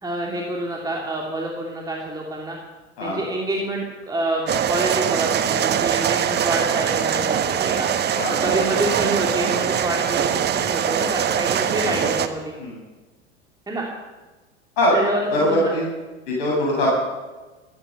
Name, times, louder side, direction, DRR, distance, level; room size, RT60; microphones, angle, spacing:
voice 1, 0.0-2.6 3.0-4.4 4.7-7.9 8.4-12.6 13.7-13.9 14.9-15.7, right 1 dB, 10° right, -1 dB, 2.9 m, -27 dB
sound 1, 4.5-12.3, right 9 dB, 30° right, 1.2 m, -22 dB
voice 2, 15.3-15.9 16.3-16.9, left 1 dB, 50° left, -4 dB, 7.5 m, -22 dB
14.5 x 14.0 x 6.8 m, 1.2 s
figure-of-eight pair, 85°, 34 cm